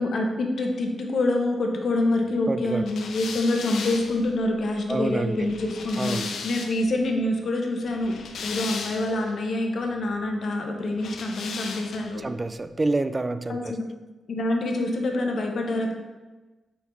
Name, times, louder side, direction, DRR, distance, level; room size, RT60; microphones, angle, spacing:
voice 1, 0.0-12.2 13.5-13.9 14.3-15.9, left 2 dB, 65° left, 2 dB, 0.9 m, -26 dB
voice 2, 2.5-2.8 4.9-5.5 6.0-6.3 12.2-13.7, right 2 dB, 25° right, 11 dB, 0.3 m, -27 dB
sound 1, 2.9-7.0 7.9-9.3 11.0-12.2, left 5 dB, 80° left, 0.6 m, -36 dB
5.2 x 4.8 x 4.0 m, 1.2 s
cardioid pair, 75°, 0 cm